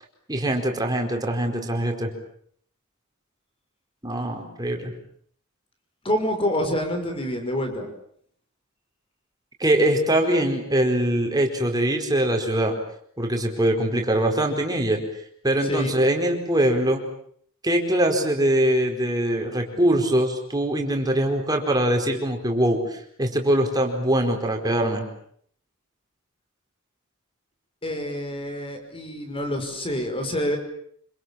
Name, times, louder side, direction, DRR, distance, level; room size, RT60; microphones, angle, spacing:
voice 1, 0.3-2.1 4.0-4.9 9.6-12.7 13.2-15.0 15.4-17.0 17.6-25.0, right 1 dB, 20° right, 3 dB, 4.7 m, -22 dB
voice 2, 6.0-7.9 15.6-16.0 27.8-30.6, left 1 dB, 25° left, 5 dB, 5.6 m, -27 dB
27.0 x 26.0 x 7.3 m, 0.65 s
head